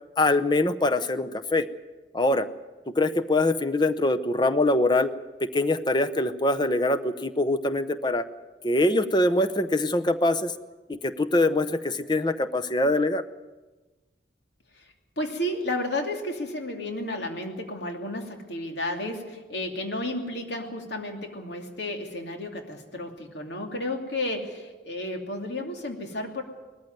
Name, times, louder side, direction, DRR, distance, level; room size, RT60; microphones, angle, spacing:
voice 1, 0.2-1.7 2.1-2.5 2.9-5.1 5.4-8.3 8.6-10.5 10.9-13.2, left 2 dB, 25° left, 10 dB, 0.8 m, -23 dB
voice 2, 14.7-26.4, left 1 dB, 70° left, 3 dB, 2.7 m, -32 dB
19.5 x 14.5 x 9.4 m, 1.2 s
head